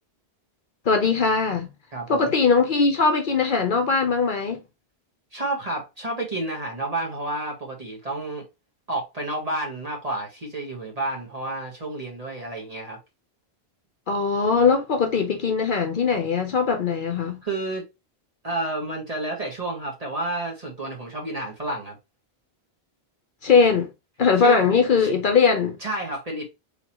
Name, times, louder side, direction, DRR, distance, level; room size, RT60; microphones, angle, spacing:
voice 1, 0.9-1.7 2.1-4.6 14.1-17.4 23.4-23.9 24.2-25.8, left 5 dB, 55° left, 0.8 m, -20 dB
voice 2, 1.9-2.3 5.3-8.4 8.9-13.0 17.4-17.8 18.4-22.0 24.4-24.6 25.0-25.2 25.8-26.4, right 2 dB, 35° right, 1.7 m, -30 dB
3.8 x 3.6 x 2.9 m
omnidirectional pair, 1.1 m